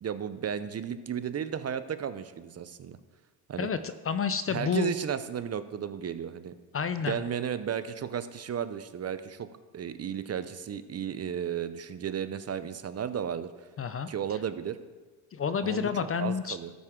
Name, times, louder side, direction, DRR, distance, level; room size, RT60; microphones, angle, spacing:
voice 1, 0.0-3.0 3.5-3.7 4.5-6.5 7.0-9.5 9.7-13.5 14.1-14.8 15.6-15.9 16.2-16.7, right 8 dB, 30° right, 12 dB, 0.5 m, -34 dB
voice 2, 3.6-4.9 6.7-7.2 13.8-14.1 15.3-16.6, left 6 dB, 30° left, 12 dB, 0.5 m, -29 dB
12.5 x 9.4 x 3.7 m, 1.3 s
cardioid pair, 100°, 49 cm